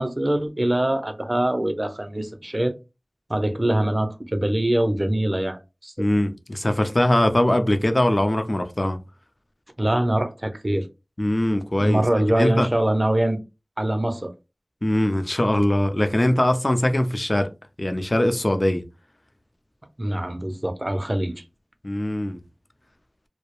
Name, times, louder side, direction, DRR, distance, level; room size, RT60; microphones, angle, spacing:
voice 1, 0.0-2.7 3.3-6.1 9.8-10.9 11.8-13.4 13.8-14.3 20.0-21.4, right 1 dB, 40° right, 0.4 m, -23 dB
voice 2, 6.0-9.0 11.2-12.7 14.8-17.5 17.8-18.8 21.2-21.3 21.8-22.4, left 1 dB, 45° left, 0.4 m, -22 dB
2.2 x 2.0 x 2.9 m
wide cardioid pair, 40°, 0 cm